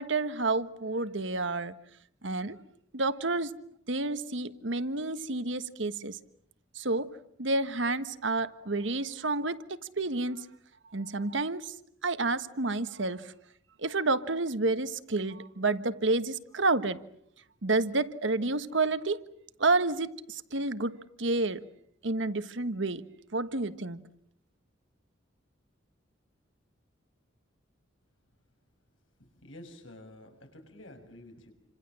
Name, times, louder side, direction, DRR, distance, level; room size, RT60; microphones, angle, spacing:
voice 1, 0.0-1.7 2.2-2.6 2.9-3.5 3.9-6.2 6.7-7.1 7.4-10.5 10.9-11.7 12.0-13.3 13.8-17.0 17.6-19.2 19.6-21.6 22.0-23.0 23.3-24.0, right 3 dB, 65° right, 1.4 m, -30 dB
voice 2, 29.3-31.5, left 1 dB, 80° left, 6.3 m, -49 dB
28.5 x 26.5 x 7.6 m
head